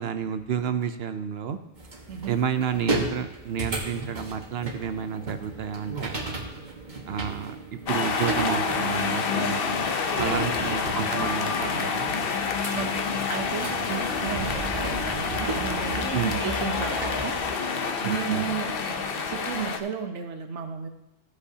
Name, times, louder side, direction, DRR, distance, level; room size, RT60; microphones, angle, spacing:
voice 1, 0.0-1.6 2.3-6.1 7.1-7.6 7.9-9.9 10.2-12.1 16.1-16.4 18.0-18.5, right 8 dB, 65° right, 9 dB, 0.8 m, -30 dB
sound 1, 1.8-17.5, right 2 dB, 40° right, 1.5 m, -35 dB
sound 2, 7.9-19.8, left 5 dB, 60° left, 0.9 m, -28 dB
voice 2, 10.1-10.8 12.7-17.4 18.0-20.9, right 8 dB, 85° right, 6 dB, 1.2 m, -34 dB
14.0 x 8.2 x 2.8 m, 0.91 s
omnidirectional pair, 1.2 m